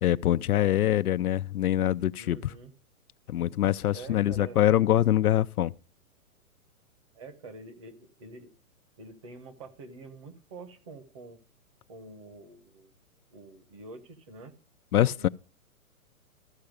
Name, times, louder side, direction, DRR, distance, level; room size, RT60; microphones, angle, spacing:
voice 1, 0.0-2.5 3.3-5.7 14.9-15.3, left 12 dB, 80° left, 0.6 m, -24 dB
voice 2, 2.2-2.7 3.9-4.6 7.1-8.5 9.0-11.4 11.9-12.9 13.3-14.5 15.2-15.3, right 3 dB, 20° right, 1.1 m, -46 dB
14.0 x 5.7 x 5.0 m
hypercardioid pair, 175°, 44 cm